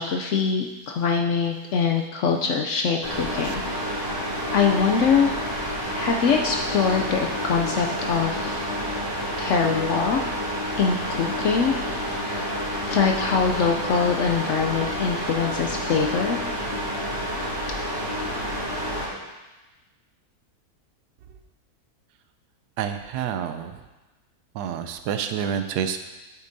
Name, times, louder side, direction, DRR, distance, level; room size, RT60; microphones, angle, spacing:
voice 1, 0.0-4.0 4.5-5.3 5.9-8.6 9.4-10.3 10.8-12.4 12.9-16.4, left 6 dB, 65° left, 2 dB, 0.7 m, -23 dB
sound 1, 3.0-19.1, equal, 15° right, 2.1 m, -29 dB
voice 2, 22.8-23.7 24.6-26.0, right 8 dB, 85° right, 8 dB, 1.2 m, -28 dB
8.5 x 8.0 x 2.6 m, 1.1 s
omnidirectional pair, 1.7 m